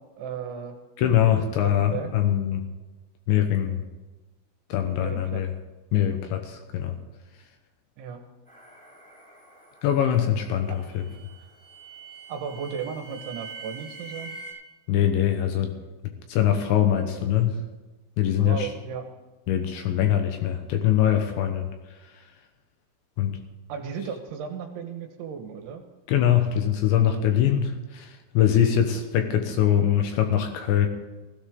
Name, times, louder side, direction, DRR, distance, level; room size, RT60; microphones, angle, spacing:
voice 1, 0.2-0.8 1.6-2.1 5.0-5.4 8.0-8.2 12.3-14.4 18.4-19.1 23.7-25.8, right 7 dB, 75° right, 5 dB, 3.4 m, -35 dB
voice 2, 1.0-2.6 3.3-3.8 4.7-5.5 5.9-7.0 9.8-11.1 14.9-15.7 16.3-17.6 18.2-18.7 19.5-21.7 23.2-23.4 26.1-30.9, left 10 dB, 75° left, 5 dB, 3.0 m, -23 dB
sound 1, 8.5-14.5, right 3 dB, ahead, 5.5 m, -45 dB
17.0 x 15.5 x 3.8 m, 1.2 s
omnidirectional pair, 5.9 m